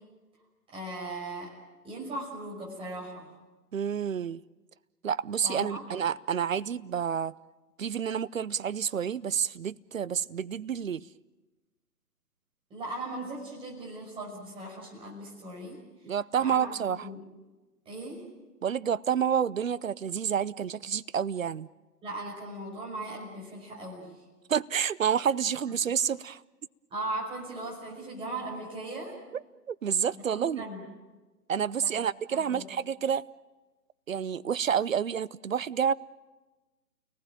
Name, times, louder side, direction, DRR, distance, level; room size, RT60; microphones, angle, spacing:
voice 1, 0.7-1.5 1.8-3.3 5.4-5.9 12.7-15.8 16.4-17.2 17.9-18.2 22.0-24.2 26.9-29.2 30.3-30.8 31.8-31.9 32.3-32.6, right 2 dB, 10° right, -3 dB, 5.7 m, -38 dB
voice 2, 3.7-4.4 5.0-7.3 7.8-11.1 16.0-17.1 18.6-21.7 24.5-26.4 29.7-30.7 31.5-33.2 34.1-35.9, right 8 dB, 55° right, 18 dB, 0.8 m, -29 dB
30.0 x 19.5 x 9.0 m, 1.2 s
figure-of-eight pair, 140°, 49 cm